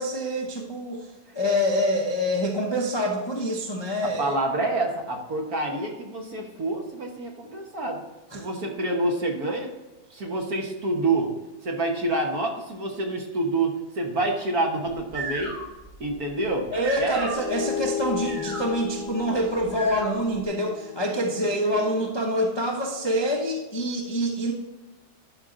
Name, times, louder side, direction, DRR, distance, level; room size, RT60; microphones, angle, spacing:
voice 1, 0.0-4.4 8.3-8.5 16.7-24.5, equal, 25° left, -1 dB, 0.5 m, -26 dB
voice 2, 4.2-8.0 8.3-9.7 10.1-11.3 11.6-15.6 16.0-16.7 17.0-17.3, right 2 dB, 50° right, 1 dB, 1.6 m, -27 dB
sound 1, 14.9-20.5, right 2 dB, 80° right, 3.8 m, -38 dB
sound 2, 17.3-22.1, left 10 dB, 90° left, 1.5 m, -35 dB
11.5 x 5.2 x 3.9 m, 1.1 s
omnidirectional pair, 2.2 m